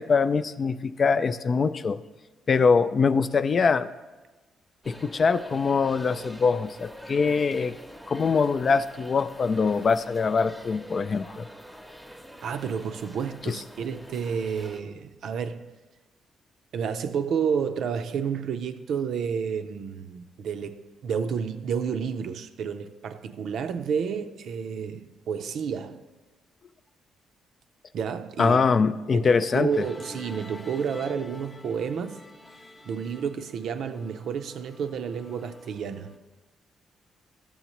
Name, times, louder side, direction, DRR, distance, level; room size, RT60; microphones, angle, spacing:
voice 1, 0.0-2.0 2.5-3.9 4.9-7.8 8.1-11.5 13.5-13.6 28.4-29.8, left 5 dB, 45° left, 0.3 m, -23 dB
sound 1, 4.8-14.8, equal, ahead, 0.8 m, -46 dB
voice 2, 12.4-15.7 16.7-26.0 27.9-28.6 29.1-32.2 32.8-36.1, right 7 dB, 70° right, 0.5 m, -30 dB
Musical instrument, 29.7-36.2, left 1 dB, 25° left, 0.8 m, -47 dB
12.0 x 7.0 x 3.0 m
cardioid pair, 90°, 0 cm